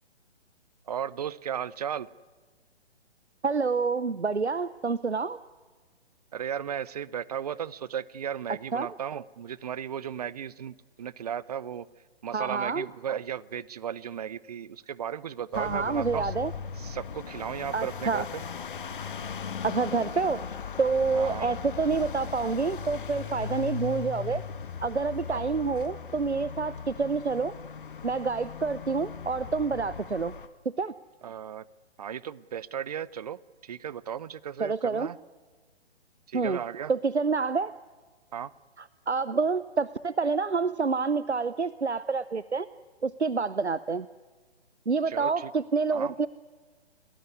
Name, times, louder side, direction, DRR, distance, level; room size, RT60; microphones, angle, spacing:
voice 1, 0.9-2.1 6.3-11.9 12.2-16.3 16.8-18.4 21.1-21.5 25.3-25.4 31.2-31.7 32.0-35.2 36.3-36.9 38.3-38.5 45.1-45.5 45.9-46.1, right 9 dB, 35° right, 21 dB, 0.7 m, -35 dB
voice 2, 3.4-5.4 8.7-8.9 12.3-12.9 15.6-16.5 17.7-18.2 19.6-20.4 20.8-24.4 24.8-27.5 28.0-30.3 30.8-30.9 34.6-35.1 36.3-36.6 36.9-37.7 39.1-42.7 43.0-44.1 44.9-46.3, right 4 dB, 90° right, 17 dB, 0.8 m, -28 dB
sound 1, 15.5-30.5, left 6 dB, 50° left, 1.8 m, -38 dB
27.5 x 19.0 x 9.6 m, 1.4 s
figure-of-eight pair, 135°, 33 cm